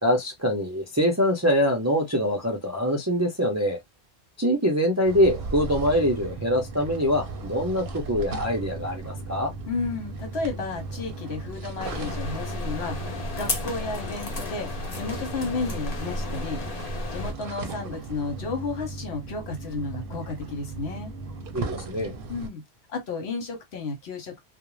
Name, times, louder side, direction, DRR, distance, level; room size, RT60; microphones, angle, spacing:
voice 1, 0.0-3.8 4.4-9.5 21.5-22.2, equal, 25° right, 0.4 m, -24 dB
sound 1, 5.0-22.5, right 3 dB, 60° right, 0.7 m, -37 dB
voice 2, 9.7-16.6 17.1-21.1 22.3-22.6 22.9-24.4, left 3 dB, 65° left, 1.1 m, -32 dB
sound 2, 11.8-17.3, left 2 dB, 40° left, 0.7 m, -33 dB
2.5 x 2.1 x 3.0 m
omnidirectional pair, 1.1 m